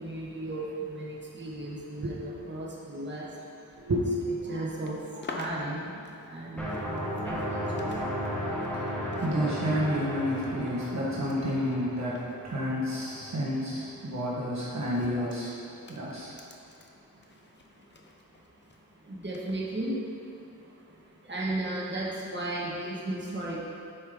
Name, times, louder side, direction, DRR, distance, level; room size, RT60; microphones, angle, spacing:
voice 1, 0.0-3.3 4.4-5.0 5.3-7.9 14.2-14.3 19.1-20.0 21.2-23.6, right 1 dB, 30° right, -5 dB, 1.4 m, -35 dB
voice 2, 3.8-4.2 9.2-12.2 12.4-15.6 15.9-16.4, equal, 50° right, -7 dB, 1.3 m, -30 dB
sound 1, 4.6-8.0 8.2-13.2 13.5-13.8 14.5-18.8 19.3-19.5, left 3 dB, 30° left, 0.7 m, -48 dB
sound 2, 6.6-13.3, equal, 5° left, 1.3 m, -35 dB
8.6 x 5.4 x 3.6 m, 2.6 s
wide cardioid pair, 90°, 36 cm